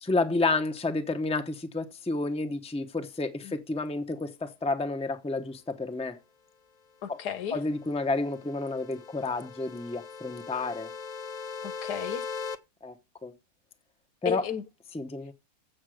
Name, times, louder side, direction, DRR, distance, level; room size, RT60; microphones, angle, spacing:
voice 1, 0.0-6.2 7.1-7.2 7.5-10.9 12.8-12.9 13.2-13.3 14.2-14.4 14.9-15.3, left 3 dB, 5° left, 0.7 m, -30 dB
voice 2, 7.0-7.6 11.6-12.2 14.2-14.6, left 10 dB, 85° left, 1.5 m, -33 dB
sound 1, 7.6-12.6, left 5 dB, 50° left, 0.5 m, -40 dB
7.7 x 7.6 x 6.4 m
omnidirectional pair, 1.7 m